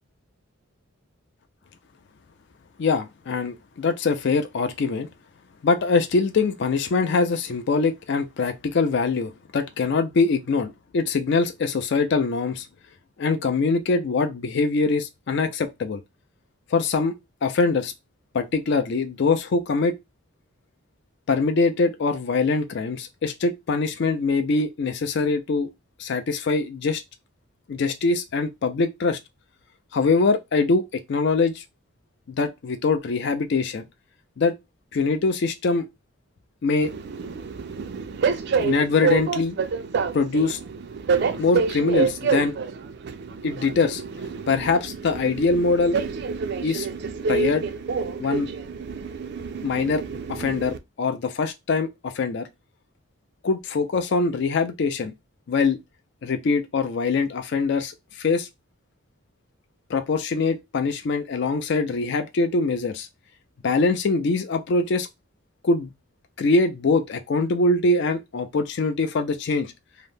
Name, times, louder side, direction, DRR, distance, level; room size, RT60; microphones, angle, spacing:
voice 1, 2.8-5.1 5.6-12.7 13.2-16.0 16.7-17.9 18.3-20.0 21.3-25.7 26.0-27.0 27.7-29.2 29.9-31.6 32.3-33.8 34.4-34.5 34.9-35.9 36.6-36.9 38.6-39.6 40.1-40.6 41.4-42.6 43.4-44.0 44.5-46.0 46.6-46.9 47.3-47.6 48.2-48.5 49.6-50.0 50.3-52.4 53.4-55.1 55.5-55.8 56.2-57.9 58.2-58.5 59.9-63.1 63.6-65.1 65.6-65.9 66.4-69.7, left 4 dB, 55° left, 0.4 m, -23 dB
Train, 36.8-50.8, right 5 dB, 50° right, 0.3 m, -28 dB
2.8 x 2.0 x 3.3 m
head